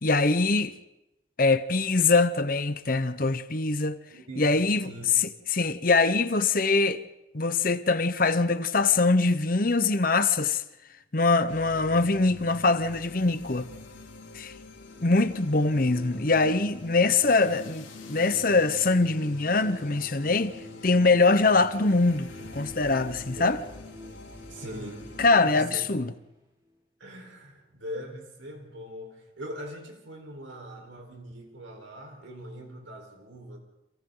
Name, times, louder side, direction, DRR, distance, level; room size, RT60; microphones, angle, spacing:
voice 1, 0.0-0.7 1.4-4.0 4.4-4.9 5.5-7.0 7.3-10.6 11.1-13.7 14.3-14.5 15.0-20.6 20.8-23.6 25.2-26.1, left 3 dB, 45° left, 1.0 m, -23 dB
voice 2, 4.1-5.1 23.3-23.7 24.5-25.1 25.5-25.9 27.0-33.6, equal, 80° right, 4.7 m, -41 dB
sound 1, 11.5-25.3, left 2 dB, 80° left, 2.9 m, -46 dB
sound 2, 14.8-26.8, left 1 dB, 20° right, 3.0 m, -48 dB
30.0 x 27.5 x 4.0 m
head